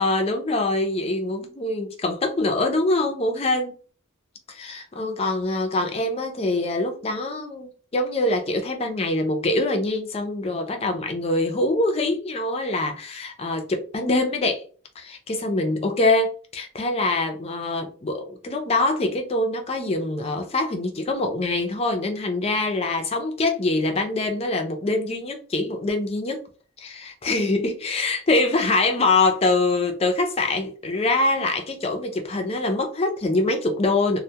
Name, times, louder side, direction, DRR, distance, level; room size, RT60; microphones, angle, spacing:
voice 1, 0.0-3.8 4.5-14.6 15.0-26.5 26.8-34.2, left 2 dB, 30° left, 0.4 m, -24 dB
2.2 x 2.1 x 2.7 m
head